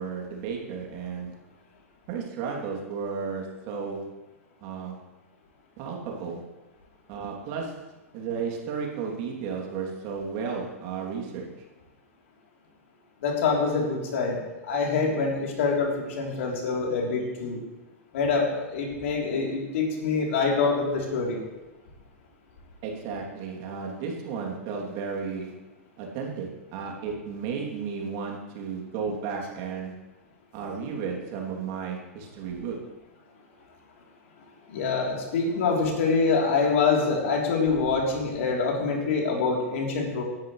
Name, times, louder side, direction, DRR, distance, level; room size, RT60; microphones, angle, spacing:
voice 1, 0.0-1.3 2.1-4.2 4.6-5.0 5.8-6.5 7.1-7.8 8.1-11.5 22.8-25.5 26.0-30.0 30.5-32.9, right 5 dB, 50° right, -1 dB, 2.8 m, -33 dB
voice 2, 13.2-17.6 18.1-21.4 34.7-40.2, left 4 dB, 65° left, -1 dB, 3.3 m, -25 dB
18.5 x 10.5 x 3.2 m, 1.1 s
hypercardioid pair, 100°, 8 cm